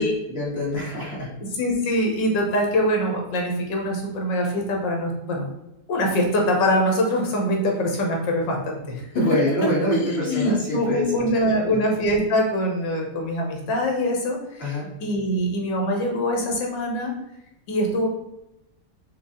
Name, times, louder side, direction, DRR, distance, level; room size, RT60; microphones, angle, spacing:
voice 1, 0.3-1.3 9.1-11.8 14.6-14.9, left 1 dB, 35° left, -6 dB, 1.6 m, -26 dB
voice 2, 1.6-5.5 5.9-9.3 9.9-17.1 17.7-18.1, equal, 80° left, 1 dB, 1.6 m, -23 dB
5.3 x 2.3 x 3.7 m, 0.88 s
omnidirectional pair, 2.0 m